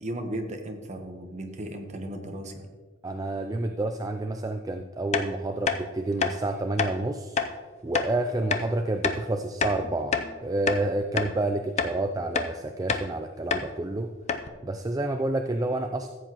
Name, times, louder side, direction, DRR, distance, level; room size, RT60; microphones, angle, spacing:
voice 1, 0.0-2.7, right 1 dB, 35° right, 4 dB, 1.0 m, -35 dB
voice 2, 3.0-7.4 7.8-14.1 14.6-16.1, right 2 dB, 15° right, 6 dB, 0.3 m, -29 dB
sound 1, 5.1-5.3 5.7-5.8 6.2-6.3 6.8-6.9 7.4-7.5 7.9-8.1 8.5-8.7 9.0-9.2 9.6-10.3 10.7-10.8 11.2-11.3 11.8-12.0 12.3-12.5 12.9-13.1 13.5-13.7 13.9-14.0 14.3-14.5, left 5 dB, 35° left, 0.5 m, -27 dB
14.5 x 8.0 x 3.0 m, 1.5 s
head